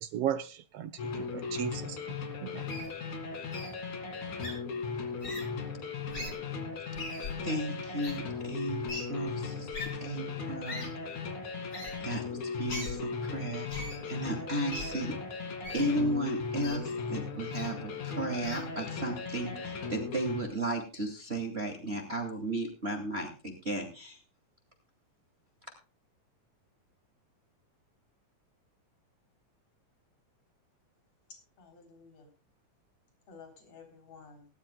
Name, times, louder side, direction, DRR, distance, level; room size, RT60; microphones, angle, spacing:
voice 1, 0.0-2.7, right 10 dB, 75° right, 1.4 m, -36 dB
sound 1, 1.0-20.4, left 5 dB, 75° left, 3.8 m, -37 dB
Wild animals, 2.7-2.9 3.5-3.7 4.4-4.5 5.2-5.4 6.1-6.3 7.0-7.3 8.0-8.1 8.9-9.0 9.7-9.9 10.7-10.9 11.7-11.9 12.7-12.9 13.7-14.0 14.7-14.9 15.6-15.9 16.6-16.8 17.5-17.7 18.4-18.6, left 2 dB, 40° left, 7.0 m, -39 dB
voice 2, 7.4-8.8 9.1-10.9 12.0-15.2 15.7-24.2, right 1 dB, 20° right, 2.6 m, -34 dB
voice 3, 31.3-32.3 33.3-34.5, left 5 dB, 55° left, 4.8 m, -53 dB
20.5 x 12.0 x 2.3 m
omnidirectional pair, 3.5 m